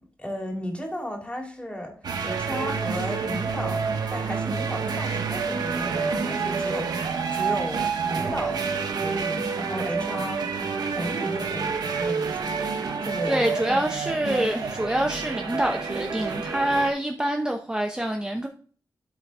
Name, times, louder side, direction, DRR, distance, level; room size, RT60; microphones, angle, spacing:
voice 1, 0.2-2.0 2.2-8.7 8.9-10.5 10.9-12.7 13.0-14.2, equal, 15° left, 2.6 m, -34 dB
sound 1, 2.0-16.9, right 5 dB, 85° right, 1.0 m, -28 dB
voice 2, 13.3-18.5, right 1 dB, 10° right, 0.8 m, -26 dB
12.0 x 4.1 x 3.5 m
wide cardioid pair, 80°, 7 cm